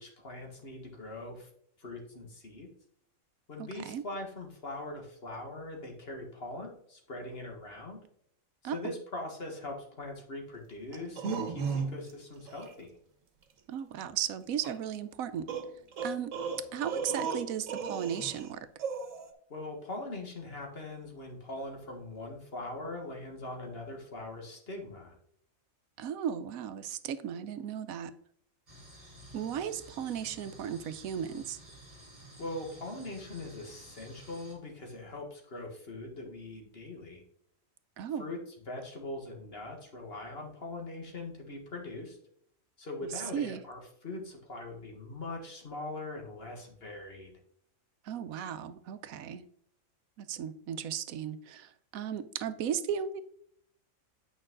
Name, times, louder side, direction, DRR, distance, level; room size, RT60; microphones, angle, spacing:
voice 1, 0.0-1.5 1.8-2.7 3.5-8.0 8.6-12.9 19.5-25.2 32.4-37.2 38.2-38.4 38.7-42.2 42.8-47.4, left 2 dB, 45° left, 1 dB, 1.9 m, -41 dB
voice 2, 3.6-4.0 8.6-9.0 13.7-15.5 16.0-16.3 16.7-18.7 26.0-28.1 29.3-31.6 38.0-38.3 43.0-43.6 48.0-49.4 50.2-53.2, right 8 dB, 85° right, 12 dB, 1.1 m, -36 dB
sound 1, 10.9-12.1 12.5-12.7 14.6-14.7 15.5-18.5 18.8-19.3, right 5 dB, 65° right, 1.4 m, -35 dB
sound 2, 28.7-34.5, right 1 dB, 25° right, 3.7 m, -52 dB
8.8 x 5.5 x 3.7 m, 0.67 s
omnidirectional pair, 1.4 m